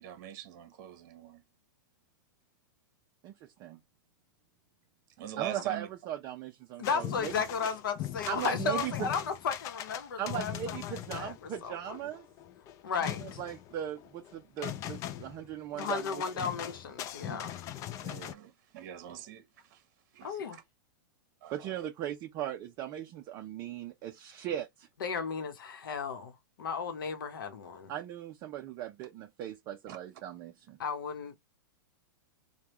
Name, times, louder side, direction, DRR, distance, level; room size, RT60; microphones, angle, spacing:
voice 1, 0.0-1.4 5.2-5.9 18.0-19.4 19.7-19.8 20.1-20.6 21.4-21.7 29.9-30.0, right 11 dB, 55° right, 1.0 m, -44 dB
voice 2, 5.4-7.3 8.3-9.1 10.2-12.3 12.9-16.2 17.2-17.4 21.5-24.9 27.9-30.8, right 11 dB, 35° right, 0.5 m, -38 dB
voice 3, 6.8-12.0 12.8-13.4 15.7-17.6 20.2-20.6 25.0-27.9 30.8-31.4, left 6 dB, 80° left, 0.9 m, -35 dB
batucada carnival Berlin, 6.8-18.3, left 11 dB, 30° left, 0.4 m, -40 dB
3.4 x 2.2 x 3.0 m
hypercardioid pair, 135°, 11 cm